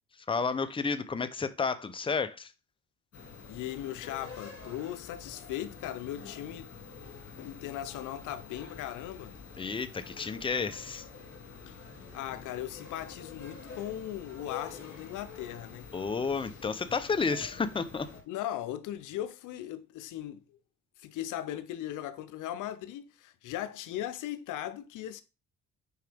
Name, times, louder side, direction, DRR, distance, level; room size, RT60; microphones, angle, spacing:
voice 1, 0.3-2.5 9.6-11.1 15.9-18.1, left 4 dB, 15° left, 0.6 m, -31 dB
sound 1, 3.1-18.2, left 5 dB, 50° left, 2.6 m, -47 dB
voice 2, 3.5-6.7 7.3-9.4 11.7-15.9 18.3-20.6 21.0-25.2, left 12 dB, 85° left, 0.6 m, -38 dB
6.4 x 4.9 x 3.5 m
cardioid pair, 90°, 30 cm